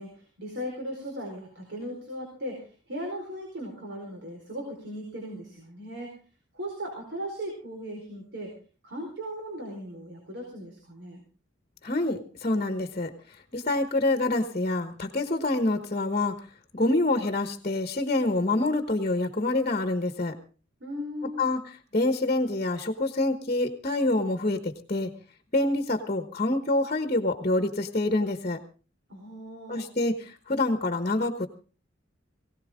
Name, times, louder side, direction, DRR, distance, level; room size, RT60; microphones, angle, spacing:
voice 1, 0.0-6.2 6.5-8.5 8.8-11.2 20.8-21.4 29.1-29.9, equal, 60° right, 1 dB, 4.6 m, -37 dB
voice 2, 11.8-13.1 13.5-16.4 16.7-20.4 21.4-21.6 21.9-25.1 25.5-28.6 29.7-31.5, left 2 dB, 35° left, 8 dB, 1.2 m, -26 dB
19.5 x 17.5 x 3.7 m, 0.37 s
head